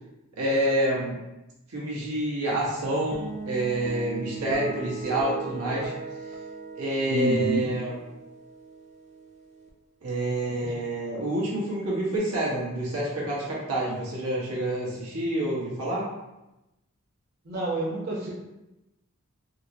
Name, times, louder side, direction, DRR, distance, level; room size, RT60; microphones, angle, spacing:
voice 1, 0.4-1.2 1.7-5.9 6.8-8.0 10.0-16.0, right 1 dB, 90° right, -5 dB, 1.1 m, -28 dB
sound 1, 3.1-9.7, right 4 dB, 30° right, 0.4 m, -38 dB
voice 2, 7.1-7.6 10.6-10.7 17.5-18.3, right 2 dB, 45° right, -7 dB, 0.8 m, -28 dB
3.8 x 2.0 x 2.7 m, 0.96 s
head